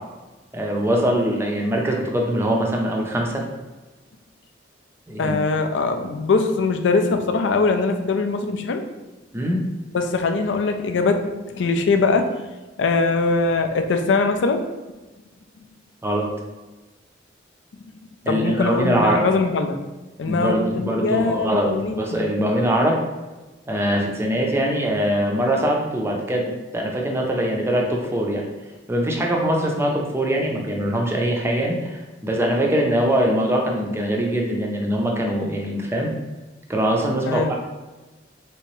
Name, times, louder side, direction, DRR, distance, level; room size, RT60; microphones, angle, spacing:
voice 1, 0.5-3.4 5.1-5.4 9.3-9.6 16.0-16.3 18.3-19.3 20.3-23.0 23.7-28.5 28.9-36.1 36.7-37.5, equal, 15° right, 0 dB, 0.5 m, -22 dB
voice 2, 5.2-8.8 9.9-12.3 12.8-14.6 18.2-19.8 20.2-22.2 37.3-37.5, left 4 dB, 70° left, 6 dB, 0.4 m, -22 dB
3.3 x 2.9 x 3.0 m, 1.2 s
head